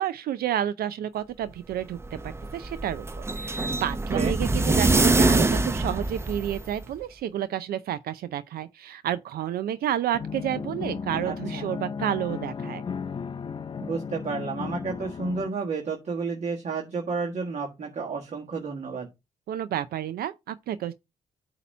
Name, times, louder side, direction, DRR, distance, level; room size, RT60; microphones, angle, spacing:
voice 1, 0.0-3.1 3.4-12.8 19.5-20.9, right 11 dB, 80° right, 0.5 m, -30 dB
sound 1, 1.8-6.9, right 2 dB, 15° right, 0.7 m, -24 dB
sound 2, 10.1-15.5, left 5 dB, 30° left, 0.5 m, -35 dB
voice 2, 11.2-11.7 13.8-19.1, right 4 dB, 45° right, 1.7 m, -31 dB
8.3 x 2.9 x 5.4 m
cardioid pair, 110°, 16 cm